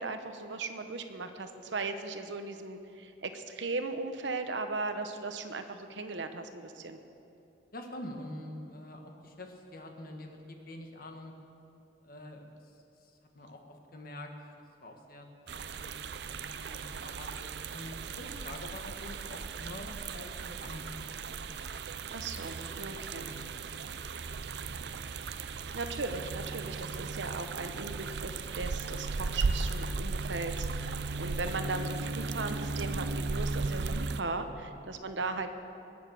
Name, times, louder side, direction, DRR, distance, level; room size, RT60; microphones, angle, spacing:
voice 1, 0.0-7.0 22.1-23.3 25.7-35.6, right 3 dB, 80° right, 8 dB, 1.0 m, -37 dB
voice 2, 7.7-11.3 12.0-14.3 14.8-15.3 15.8-21.6 22.6-24.1 34.4-34.5, left 1 dB, 50° left, 3 dB, 1.6 m, -46 dB
sound 1, 15.5-34.2, right 4 dB, 65° right, 0.5 m, -36 dB
21.0 x 7.4 x 6.5 m, 2.7 s
head